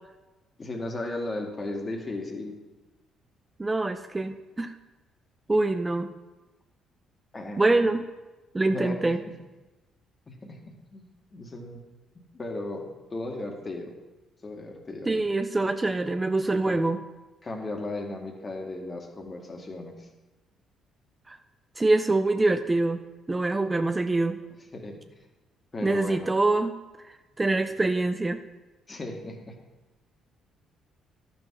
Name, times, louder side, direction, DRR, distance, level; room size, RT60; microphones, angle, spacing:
voice 1, 0.6-2.5 7.3-7.9 8.7-9.3 10.3-11.8 12.3-13.9 14.4-15.3 16.4-16.8 17.4-20.1 24.7-25.0 25.7-26.3 27.8-27.9 28.9-29.6, left 2 dB, 35° left, 2 dB, 2.0 m, -36 dB
voice 2, 3.6-4.7 5.5-6.1 7.6-8.1 8.5-9.2 15.1-17.0 21.3-21.4 21.8-23.0 23.3-24.4 25.8-26.7 27.1-28.4, right 2 dB, 20° right, 9 dB, 0.6 m, -25 dB
11.5 x 6.0 x 4.8 m, 1.1 s
hypercardioid pair, 55°, 0 cm